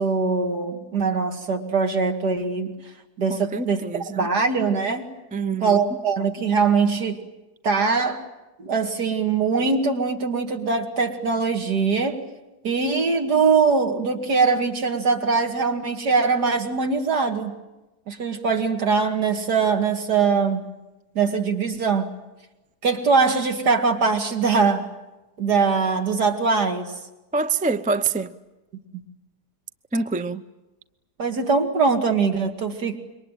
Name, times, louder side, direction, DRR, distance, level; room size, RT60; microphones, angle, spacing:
voice 1, 0.0-2.8 3.2-3.8 4.2-5.1 5.6-7.2 7.6-8.2 8.6-12.2 12.6-17.5 18.1-20.7 21.1-22.1 22.8-24.9 25.4-26.9 31.2-33.0, right 5 dB, 80° right, 2.9 m, -22 dB
voice 2, 3.3-4.3 5.3-5.8 27.3-28.3 29.9-30.4, right 4 dB, 10° right, 0.4 m, -26 dB
27.0 x 23.5 x 9.2 m
omnidirectional pair, 1.7 m